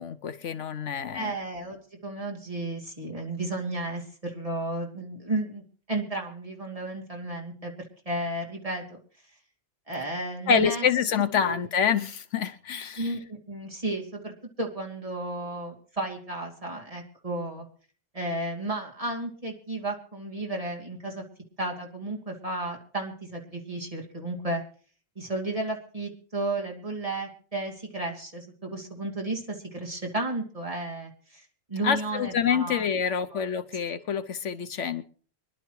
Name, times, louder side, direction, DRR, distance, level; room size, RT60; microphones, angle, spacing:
voice 1, 0.0-1.3 10.5-13.1 31.8-35.0, left 7 dB, 70° left, 11 dB, 1.1 m, -27 dB
voice 2, 1.1-1.8 2.0-5.6 5.9-7.7 8.0-9.0 9.9-10.9 11.4-11.5 13.0-17.7 18.1-21.2 21.6-24.6 25.2-33.4, right 2 dB, 25° right, 0 dB, 2.8 m, -33 dB
25.0 x 11.5 x 3.1 m, 0.42 s
omnidirectional pair, 1.3 m